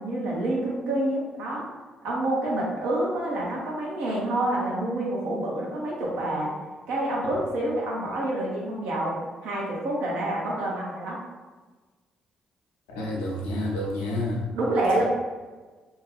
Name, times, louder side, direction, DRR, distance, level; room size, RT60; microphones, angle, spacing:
voice 1, 0.0-1.6 2.0-6.5 6.9-9.2 9.4-11.2 14.5-15.0, right 1 dB, 75° right, -4 dB, 0.9 m, -27 dB
voice 2, 12.9-14.5, left 1 dB, 85° left, -2 dB, 0.7 m, -29 dB
2.8 x 2.4 x 3.2 m, 1.3 s
hypercardioid pair, 45°, 3 cm